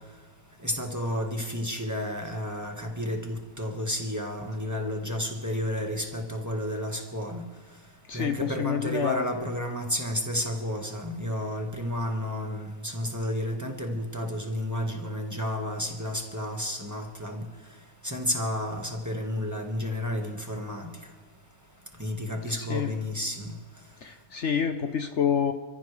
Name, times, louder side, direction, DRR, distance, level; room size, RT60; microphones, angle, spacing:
voice 1, 0.6-7.4 8.1-17.4 18.0-20.9 22.0-23.6, left 1 dB, 15° right, 2 dB, 1.5 m, -31 dB
voice 2, 8.1-9.2 22.7-22.9 24.0-25.5, left 8 dB, 60° left, 7 dB, 1.1 m, -27 dB
28.5 x 14.5 x 3.3 m, 1.3 s
omnidirectional pair, 1.5 m